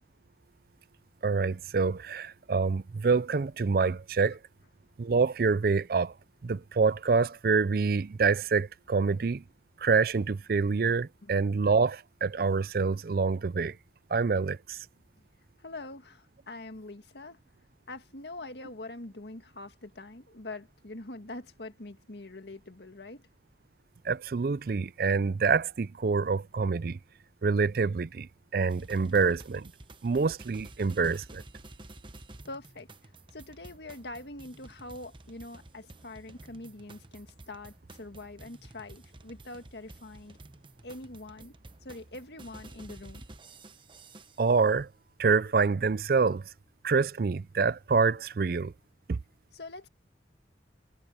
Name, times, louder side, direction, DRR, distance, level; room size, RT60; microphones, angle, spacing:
voice 1, 1.2-4.4 5.0-6.1 6.4-9.4 9.8-13.7 14.1-14.8 24.1-27.0 27.4-29.7 30.0-31.4 44.4-44.9 45.2-46.4 46.8-48.7 49.1-49.2, right 4 dB, 55° right, 0.4 m, -26 dB
voice 2, 15.6-17.4 17.9-23.2 32.4-40.4 40.8-41.5 41.8-43.2 49.5-49.9, left 2 dB, 70° left, 1.8 m, -44 dB
sound 1, 28.7-44.6, right 2 dB, 30° right, 1.1 m, -51 dB
head